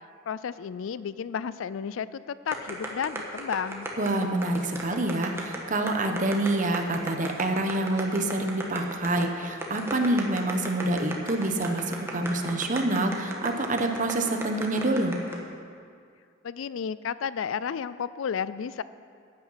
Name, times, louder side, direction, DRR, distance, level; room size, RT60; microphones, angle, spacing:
voice 1, 0.3-3.9 16.4-18.8, left 7 dB, 70° left, 16 dB, 0.4 m, -32 dB
sound 1, 2.5-15.4, right 1 dB, 15° right, 1.5 m, -35 dB
voice 2, 4.0-15.1, right 2 dB, 40° right, 5 dB, 1.1 m, -27 dB
14.5 x 9.0 x 5.8 m, 2.2 s
head